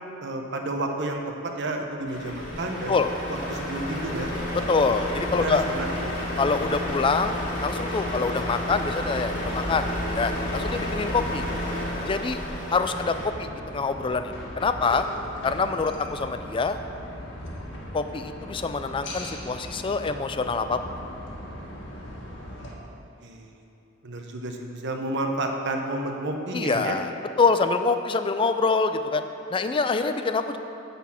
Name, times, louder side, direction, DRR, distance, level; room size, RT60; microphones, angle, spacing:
voice 1, 0.2-3.0 3.3-4.3 5.3-6.3 22.6-22.8 23.2-23.6 24.0-27.0, right 2 dB, 60° right, 3 dB, 0.9 m, -31 dB
Truck, 2.1-13.3, left 1 dB, 45° left, 1.8 m, -31 dB
voice 2, 4.7-5.6 6.4-9.9 10.1-11.4 12.1-12.4 12.7-15.0 15.4-16.8 17.9-20.8 26.5-27.1 27.4-29.2 29.5-30.6, left 4 dB, 25° left, 9 dB, 0.4 m, -25 dB
sound 1, 12.8-22.7, equal, 60° left, 1.5 m, -39 dB
9.8 x 4.1 x 7.4 m, 2.8 s
head